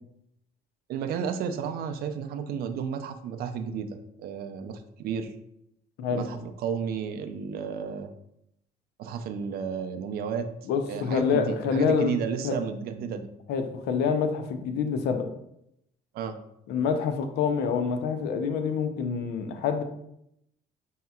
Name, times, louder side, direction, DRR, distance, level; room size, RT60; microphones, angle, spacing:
voice 1, 0.9-3.9 4.2-5.3 6.1-8.1 9.0-10.5 10.9-13.3 16.1-16.4, right 7 dB, 65° right, 7 dB, 0.4 m, -32 dB
voice 2, 10.7-12.1 12.4-12.5 13.5-15.3 16.7-19.8, left 6 dB, 80° left, 7 dB, 0.5 m, -26 dB
5.3 x 2.8 x 2.3 m, 0.78 s
cardioid pair, 110°, 17 cm